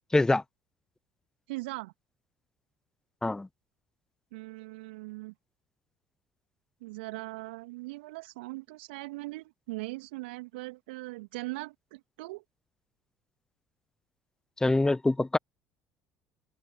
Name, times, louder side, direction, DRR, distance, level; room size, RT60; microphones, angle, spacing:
voice 1, 0.1-0.4 3.2-3.5 14.6-15.4, left 2 dB, 10° left, 0.7 m, -24 dB
voice 2, 1.5-1.9 4.3-5.3 6.8-12.4, right 22 dB, 70° right, 3.1 m, -40 dB
open air
figure-of-eight pair, 60°, 6 cm